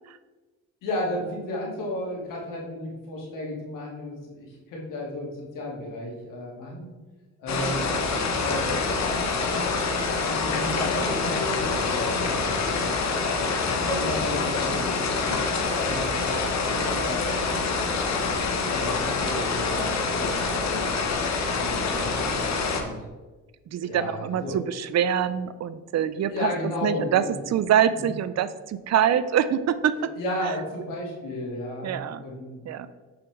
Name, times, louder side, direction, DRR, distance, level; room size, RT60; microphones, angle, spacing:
voice 1, 0.8-6.9 7.4-8.0 8.4-9.7 10.0-12.1 12.3-12.8 13.6-14.9 15.2-15.4 15.7-16.2 16.9-17.4 18.4-21.0 21.5-22.9 23.8-24.6 26.3-27.4 27.9-28.1 30.0-32.6, left 1 dB, 80° left, -3 dB, 2.4 m, -33 dB
sound 1, 7.5-22.8, left 4 dB, 55° left, 1.2 m, -26 dB
voice 2, 23.7-26.5 26.8-27.2 27.5-29.9 31.8-32.2 32.6-32.9, right 9 dB, 55° right, 14 dB, 0.5 m, -24 dB
7.2 x 5.9 x 3.6 m, 1.3 s
supercardioid pair, 75°, 32 cm